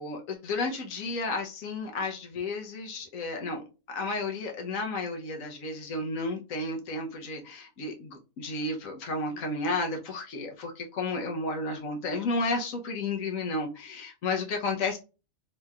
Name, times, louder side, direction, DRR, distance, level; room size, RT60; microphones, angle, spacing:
voice 1, 0.0-15.0, left 3 dB, 85° left, 1.2 m, -32 dB
3.2 x 2.9 x 2.3 m
omnidirectional pair, 1.4 m